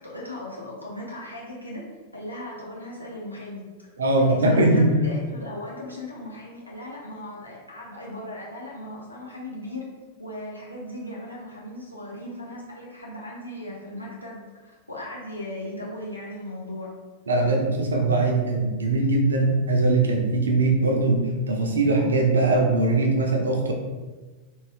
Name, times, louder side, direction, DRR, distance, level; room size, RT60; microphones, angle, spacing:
voice 1, 0.0-1.8 2.1-3.9 4.2-9.9 10.2-16.9, left 1 dB, 90° left, -5 dB, 0.7 m, -37 dB
voice 2, 4.0-4.9 17.3-21.2 21.5-23.7, right 2 dB, 70° right, 1 dB, 0.6 m, -21 dB
3.6 x 2.6 x 3.3 m, 1.3 s
figure-of-eight pair, 90°, 0 cm